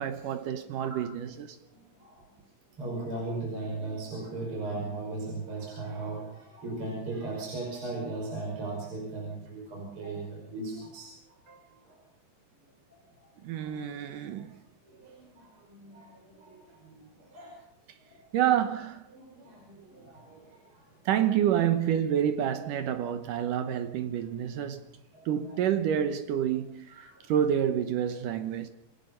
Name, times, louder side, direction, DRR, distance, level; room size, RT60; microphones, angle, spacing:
voice 1, 0.0-1.6 11.5-11.6 13.4-14.5 18.3-19.1 21.1-24.9 25.3-28.7, right 9 dB, 70° right, 2.1 m, -28 dB
voice 2, 1.7-2.2 2.8-11.1 13.6-13.7 14.9-16.9 17.3-17.6 19.1-20.6 25.1-25.6 26.9-27.2, right 2 dB, 30° right, 6.4 m, -38 dB
28.0 x 19.5 x 5.6 m
omnidirectional pair, 4.9 m